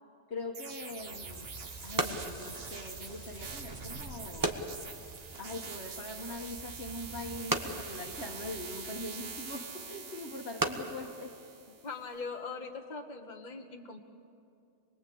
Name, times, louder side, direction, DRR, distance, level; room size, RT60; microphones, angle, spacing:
voice 1, 0.3-1.5 1.8-4.6 5.4-11.4 11.7-11.8, left 2 dB, 65° left, 1.6 m, -42 dB
sound 1, 0.5-11.9, right 5 dB, 60° right, 1.4 m, -45 dB
sound 2, 0.9-12.3, right 2 dB, 20° right, 1.3 m, -39 dB
Crackle, 1.0-10.0, right 3 dB, 35° right, 1.5 m, -49 dB
voice 2, 11.8-14.0, left 4 dB, 40° left, 1.4 m, -41 dB
26.5 x 21.0 x 8.4 m
omnidirectional pair, 1.1 m